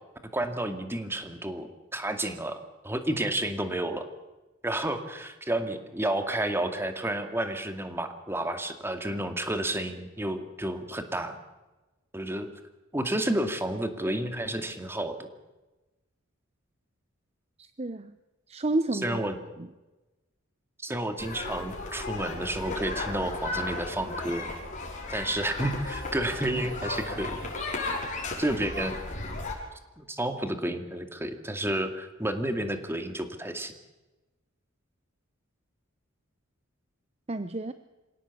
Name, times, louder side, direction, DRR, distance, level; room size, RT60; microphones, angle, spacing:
voice 1, 0.3-2.6 2.8-4.0 4.6-11.4 12.1-12.5 12.9-15.3 18.9-19.4 20.8-24.5 25.1-27.4 28.4-28.9 30.0-33.7, right 1 dB, 10° right, 7 dB, 2.3 m, -31 dB
voice 2, 17.6-18.1 18.5-19.3 19.6-19.7 37.3-37.7, right 2 dB, 30° right, 11 dB, 0.8 m, -30 dB
sound 1, 21.2-29.5, left 2 dB, 40° left, 6.0 m, -35 dB
26.5 x 17.5 x 8.5 m, 1.1 s
head